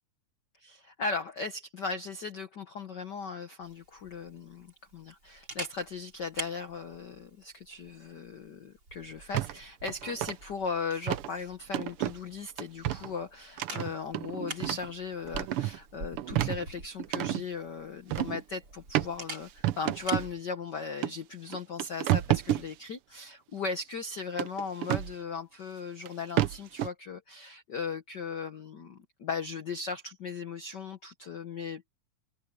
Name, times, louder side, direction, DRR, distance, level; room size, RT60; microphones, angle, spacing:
voice 1, 0.6-31.8, left 4 dB, 70° left, 1.0 m, -37 dB
Camera, 3.6-20.3, right 2 dB, 35° right, 7.6 m, -47 dB
sound 1, 9.3-9.5 9.9-10.3 11.1-11.3 11.7-12.2 12.6-13.1 13.6-14.9 15.3-15.8 16.2-17.4 18.1-18.4 18.9-19.1 19.6-20.3 21.0-21.1 21.5-22.7 24.4-25.1 26.1-26.2 26.4-26.9, right 13 dB, 80° right, 1.2 m, -30 dB
omnidirectional pair, 3.6 m